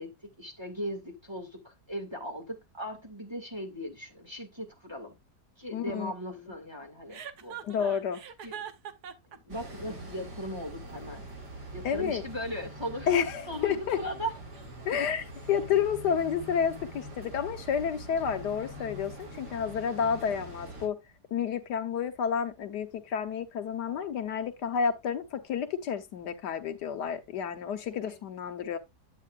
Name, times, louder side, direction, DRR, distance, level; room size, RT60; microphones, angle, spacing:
voice 1, 0.0-5.2 5.6-7.6 8.4-8.6 9.3-11.2 11.7-13.1 13.5-14.3 27.8-28.2, equal, 15° right, 2.2 m, -38 dB
voice 2, 5.7-6.1 7.6-8.2 11.8-12.2 13.1-14.0 14.9-21.0 21.3-28.8, left 7 dB, 85° left, 1.6 m, -30 dB
Chuckle chortle, 7.1-9.4, right 9 dB, 70° right, 1.5 m, -41 dB
sound 1, 9.5-20.9, right 1 dB, 85° right, 3.1 m, -44 dB
9.7 x 8.4 x 2.4 m
omnidirectional pair, 1.7 m